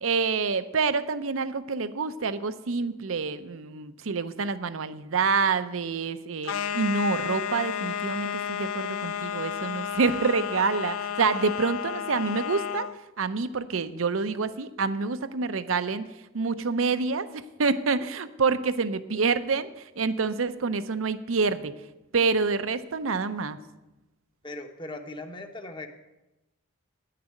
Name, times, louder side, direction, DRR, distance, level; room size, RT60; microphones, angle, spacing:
voice 1, 0.0-12.9 13.2-21.7 22.1-23.6, right 4 dB, 75° right, 13 dB, 0.7 m, -27 dB
sound 1, 6.4-13.0, left 8 dB, 85° left, 0.5 m, -32 dB
voice 2, 24.4-25.9, left 2 dB, 25° left, 6 dB, 0.9 m, -39 dB
9.9 x 6.7 x 9.1 m, 0.98 s
head